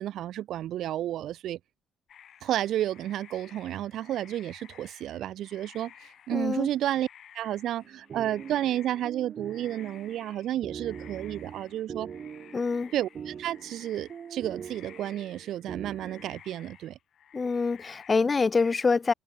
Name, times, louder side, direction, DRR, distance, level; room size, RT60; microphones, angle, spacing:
voice 1, 0.0-1.6 2.4-7.1 7.3-12.1 12.9-17.0, right 12 dB, 65° right, 0.9 m, -31 dB
sound 1, 2.1-18.2, left 9 dB, 50° left, 7.9 m, -54 dB
voice 2, 6.3-6.7 12.5-12.9 17.3-19.1, left 4 dB, 20° left, 0.5 m, -25 dB
sound 2, 7.8-16.3, right 7 dB, 35° right, 6.3 m, -43 dB
cardioid pair, 170°, 0 cm